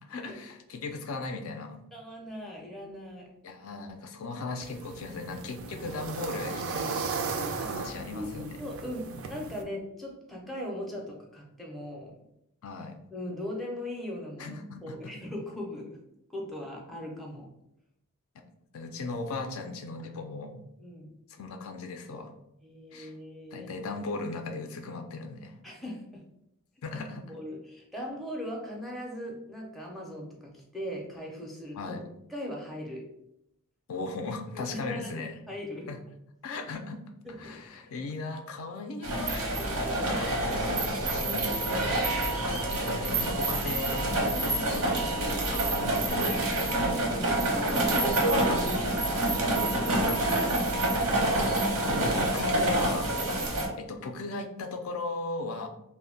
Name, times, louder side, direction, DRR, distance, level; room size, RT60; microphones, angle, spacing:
voice 1, 0.1-1.8 3.4-7.1 7.6-8.6 12.6-13.0 14.4-15.0 18.7-20.6 21.4-22.3 22.9-23.1 23.5-25.6 26.8-27.2 31.8-32.0 33.9-35.4 35.9-36.0 36.4-37.0 37.4-39.6 40.1-44.1 44.7-45.1 45.5-46.9 47.9-48.4 50.8-51.1 52.0-53.1 53.8-55.7, left 3 dB, 65° left, 5 dB, 0.4 m, -37 dB
voice 2, 1.9-3.3 7.6-7.8 8.1-12.1 13.1-16.0 16.3-17.5 20.8-21.2 22.6-23.9 25.6-26.2 27.3-32.0 32.3-33.0 34.5-35.9 37.2-37.6 39.5-40.3 44.3-44.8 47.0-50.2 53.4-53.7, left 1 dB, ahead, -2 dB, 0.4 m, -39 dB
sound 1, 4.6-9.6, right 4 dB, 60° right, 0.3 m, -36 dB
sound 2, 39.0-53.7, right 1 dB, 90° right, 0.8 m, -27 dB
2.1 x 2.1 x 3.6 m, 0.81 s
head